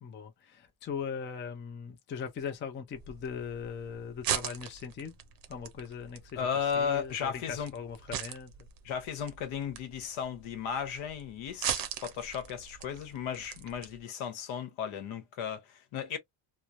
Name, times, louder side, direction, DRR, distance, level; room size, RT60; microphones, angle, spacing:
voice 1, 0.0-5.2 5.5-6.5 6.7-8.5, left 6 dB, 25° left, 0.4 m, -39 dB
sound 1, 2.9-14.0, right 10 dB, 45° right, 0.6 m, -40 dB
voice 2, 6.4-7.7 8.8-16.2, left 7 dB, 70° left, 1.0 m, -35 dB
3.0 x 2.1 x 2.4 m
cardioid pair, 175°, 49 cm